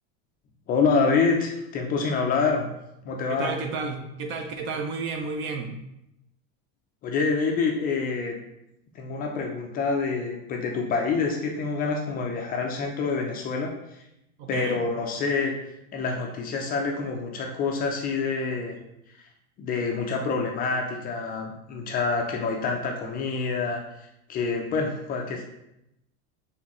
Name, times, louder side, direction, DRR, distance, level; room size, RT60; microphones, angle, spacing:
voice 1, 0.7-2.7 3.1-3.5 7.0-8.4 9.0-13.7 14.5-15.5 15.9-18.7 19.6-23.8 24.3-25.4, left 4 dB, 25° left, 1 dB, 0.4 m, -26 dB
voice 2, 3.3-5.7 14.4-14.8, right 4 dB, 35° right, 5 dB, 0.4 m, -31 dB
4.5 x 3.2 x 2.9 m, 0.84 s
supercardioid pair, 145°, 35 cm